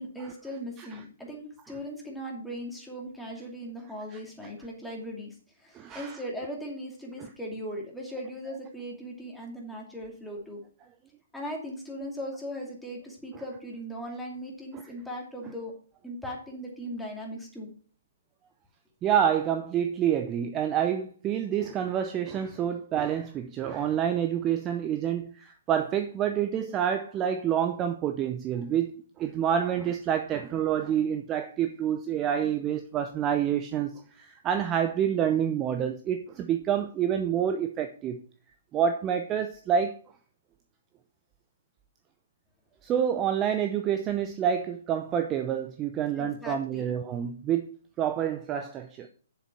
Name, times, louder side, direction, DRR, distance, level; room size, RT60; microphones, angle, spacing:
voice 1, 0.0-10.6 11.3-15.7 16.0-17.7 46.2-46.9, equal, ahead, 2.7 m, -38 dB
voice 2, 5.7-6.2 19.0-28.9 29.2-38.2 38.7-39.9 42.8-47.7 48.0-49.1, right 9 dB, 20° right, 0.7 m, -28 dB
7.3 x 7.1 x 5.4 m
figure-of-eight pair, 125°, 0 cm